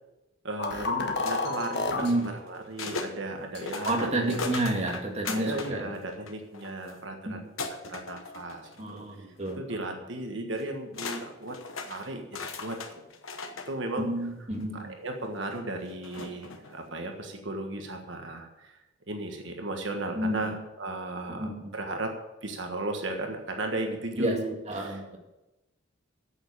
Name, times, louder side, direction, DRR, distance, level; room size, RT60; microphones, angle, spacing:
voice 1, 0.4-4.6 5.2-9.3 9.6-11.6 11.8-12.3 12.6-12.8 13.7-14.1 14.7-18.8 19.1-22.1 22.4-25.0, right 2 dB, 60° right, 3 dB, 1.5 m, -35 dB
sound 1, 0.6-2.1 2.8-2.9 3.5-3.6 4.3-4.4, left 3 dB, 55° left, 1.4 m, -30 dB
sound 2, 1.3-3.1 3.6-5.8 6.1-6.9 7.6-9.0 9.4-9.6 10.6-10.7 10.9-13.7 14.5-14.6 16.0-16.8, left 4 dB, 75° left, 1.1 m, -38 dB
voice 2, 1.9-2.3 3.8-5.9 7.3-7.4 8.8-9.6 14.0-14.9 20.2-20.5 21.3-21.7 24.1-25.2, right 1 dB, 30° right, 1 dB, 2.0 m, -30 dB
8.8 x 7.3 x 8.8 m, 0.99 s
head